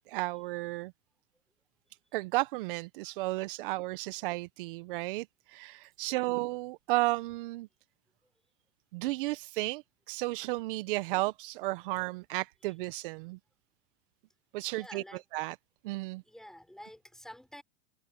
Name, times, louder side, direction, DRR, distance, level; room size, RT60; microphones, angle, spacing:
voice 1, 0.1-0.9 2.1-7.7 8.9-13.4 14.5-15.6 15.8-16.2, right 20 dB, 65° right, 1.1 m, -33 dB
voice 2, 14.7-15.2 16.3-17.6, equal, ahead, 6.0 m, -49 dB
open air
hypercardioid pair, 120°, 29 cm